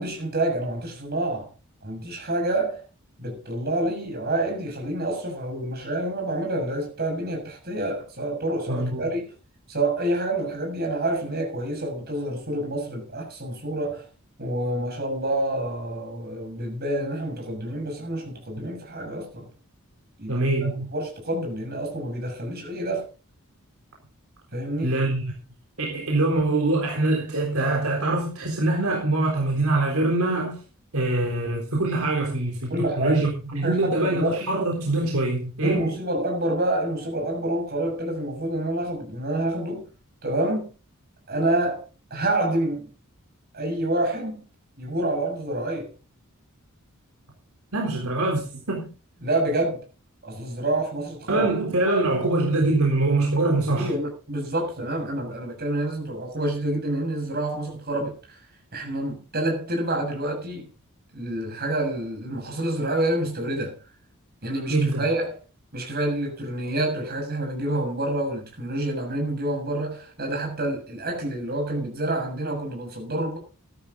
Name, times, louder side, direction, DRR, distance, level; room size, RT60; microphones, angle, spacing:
voice 1, 0.0-1.5 1.8-2.8 3.2-9.3 9.7-14.1 14.4-19.4 20.2-20.5 20.9-23.1 24.5-24.9 32.7-34.5 35.6-39.9 40.2-40.7 41.3-41.8 42.1-42.9 43.5-44.4 44.8-45.9 49.2-49.8 50.2-51.5 53.8-58.4 58.7-60.7 61.1-63.7 64.4-65.4 65.7-73.4, right 1 dB, 45° right, 6.8 m, -28 dB
voice 2, 8.7-9.0 20.3-20.9 24.8-25.2 25.8-30.6 30.9-35.9 47.7-48.9 51.3-53.9 64.7-65.1, right 2 dB, 75° right, 3.8 m, -24 dB
14.0 x 12.0 x 4.0 m
head